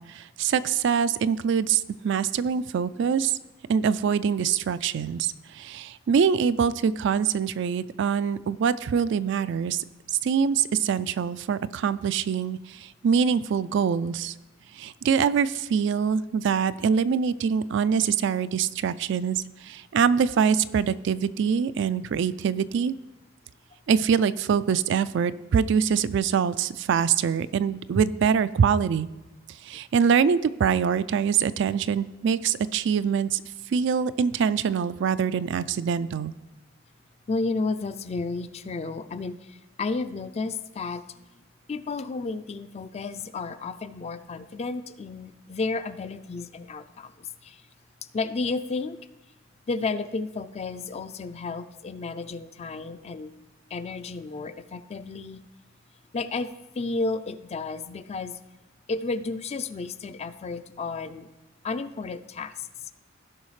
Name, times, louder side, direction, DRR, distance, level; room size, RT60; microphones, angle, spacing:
voice 1, 0.0-3.4 3.7-9.8 10.2-14.3 14.8-22.9 23.9-29.1 29.6-33.4 33.7-36.3, right 7 dB, 65° right, 14 dB, 0.3 m, -24 dB
voice 2, 37.3-41.2 41.7-47.6 48.1-49.0 49.7-53.3 53.7-55.4 56.1-58.4 58.9-61.3 61.6-62.7, left 3 dB, 35° left, 12 dB, 0.4 m, -32 dB
16.5 x 5.6 x 3.2 m, 1.1 s
head